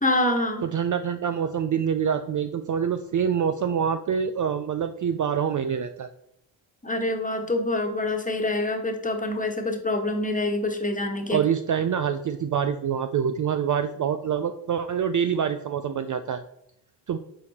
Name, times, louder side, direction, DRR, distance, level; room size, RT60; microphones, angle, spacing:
voice 1, 0.0-0.6 6.8-11.4, left 2 dB, 15° left, 3 dB, 1.4 m, -26 dB
voice 2, 0.6-6.1 11.3-16.4 17.1-17.2, right 7 dB, 40° right, 9 dB, 0.4 m, -26 dB
6.8 x 4.2 x 4.2 m, 0.76 s
cardioid pair, 75°, 48 cm